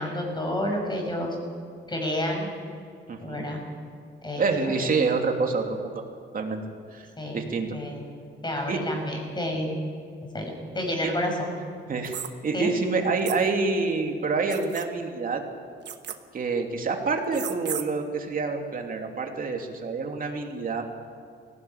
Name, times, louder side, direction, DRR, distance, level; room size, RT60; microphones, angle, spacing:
voice 1, 0.0-1.4 1.9-2.5 3.2-3.7 4.2-4.8 7.2-8.0 8.4-9.7 10.3-11.3 12.5-12.7, left 1 dB, 20° left, 2 dB, 6.1 m, -30 dB
voice 2, 3.1-3.4 4.4-6.0 6.3-6.6 6.9-7.1 7.3-7.8 8.7-8.8 11.0-11.1 11.9-12.2 12.4-15.4 16.3-20.8, right 4 dB, 45° right, 3 dB, 2.8 m, -27 dB
sound 1, 12.0-12.3 13.3-13.4 14.5-14.9 15.9-16.2 17.3-17.8, right 9 dB, 60° right, 1.3 m, -34 dB
18.5 x 16.5 x 8.7 m, 2.2 s
cardioid pair, 90°, 20 cm